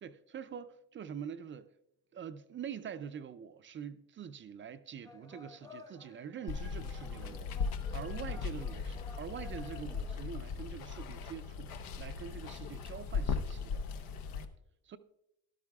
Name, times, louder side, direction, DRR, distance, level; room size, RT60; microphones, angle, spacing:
voice 1, 0.0-1.7 2.1-7.5 7.9-13.8 14.8-15.0, right 7 dB, 35° right, 0.5 m, -45 dB
sound 1, 5.0-10.4, left 2 dB, 10° left, 0.7 m, -54 dB
Water, 6.5-14.4, left 5 dB, 75° left, 0.8 m, -38 dB
13.5 x 12.0 x 2.3 m
cardioid pair, 110°, 35 cm